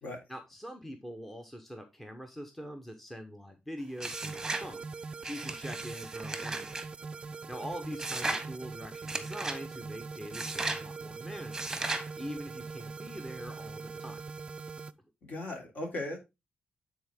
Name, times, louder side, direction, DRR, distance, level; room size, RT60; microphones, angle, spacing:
voice 1, 0.3-6.7 7.2-11.8 12.2-14.2, equal, 5° left, 5 dB, 0.9 m, -43 dB
sound 1, 4.0-4.7 5.2-6.9 8.0-8.5 9.1-9.6 10.3-10.8 11.5-12.1, right 2 dB, 15° right, 1.1 m, -35 dB
sound 2, 4.1-14.9, right 4 dB, 30° right, 0.4 m, -42 dB
voice 2, 15.2-16.2, left 1 dB, 55° left, 1 dB, 3.1 m, -37 dB
9.3 x 4.1 x 3.6 m, 0.23 s
wide cardioid pair, 140°, 3 cm